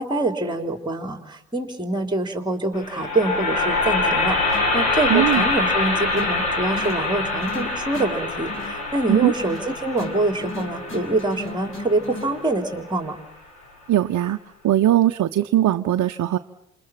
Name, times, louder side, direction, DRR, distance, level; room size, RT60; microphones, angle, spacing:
voice 1, 0.0-13.2, right 2 dB, 10° right, 5 dB, 3.8 m, -25 dB
sound 1, 2.7-12.9, left 3 dB, 90° left, 7.0 m, -25 dB
sound 2, 4.5-12.5, left 1 dB, 30° left, 5.9 m, -38 dB
voice 2, 5.1-5.4 9.1-9.3 13.9-14.4 14.6-16.4, right 12 dB, 45° right, 5 dB, 1.1 m, -19 dB
28.5 x 28.0 x 6.0 m, 0.74 s
hypercardioid pair, 60°, 42 cm